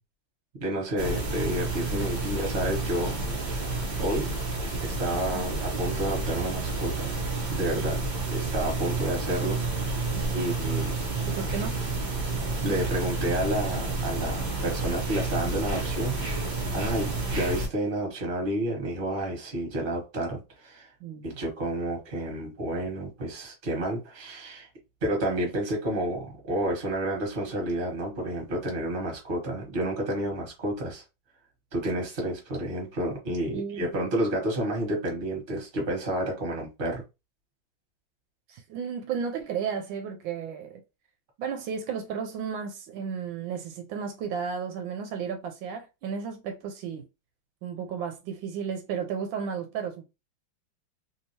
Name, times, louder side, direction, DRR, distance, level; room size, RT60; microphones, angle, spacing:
voice 1, 0.6-3.6 4.0-4.3 4.8-7.1 7.5-8.0 8.3-9.8 10.3-10.9 12.6-20.9 21.2-24.7 25.0-31.0 31.7-37.0, right 1 dB, 30° right, 1.3 m, -30 dB
sound 1, 1.0-17.7, right 3 dB, 60° right, 0.4 m, -30 dB
voice 2, 10.1-10.5 11.3-11.8 21.0-21.4 33.5-33.9 38.5-40.8 41.4-47.1 47.6-50.0, right 6 dB, 80° right, 1.3 m, -33 dB
3.2 x 2.8 x 2.8 m
omnidirectional pair, 2.1 m